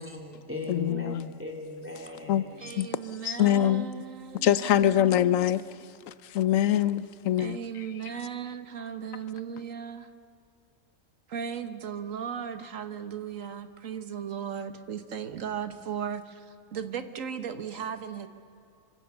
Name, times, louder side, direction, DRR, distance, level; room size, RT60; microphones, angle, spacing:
voice 1, 0.0-2.7, left 2 dB, 10° right, 2.9 m, -38 dB
voice 2, 0.7-1.3 2.3-2.5 2.8-2.9 3.2-3.9 4.4-5.6 6.1-7.9, left 11 dB, 85° left, 1.1 m, -24 dB
voice 3, 2.6-5.6 7.4-10.1 11.3-16.5 16.7-18.3, right 7 dB, 85° right, 1.6 m, -36 dB
26.0 x 25.0 x 6.9 m
omnidirectional pair, 1.3 m